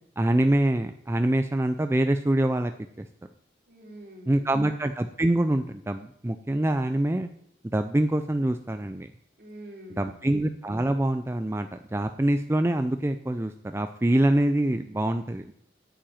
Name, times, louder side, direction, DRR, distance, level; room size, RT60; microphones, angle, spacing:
voice 1, 0.2-2.7 3.0-3.1 4.3-7.3 7.7-9.1 10.0-15.5, right 1 dB, 15° right, 8 dB, 0.4 m, -25 dB
voice 2, 3.7-4.5 9.4-10.2, right 1 dB, 55° right, -2 dB, 3.7 m, -45 dB
8.9 x 7.6 x 8.8 m, 0.71 s
head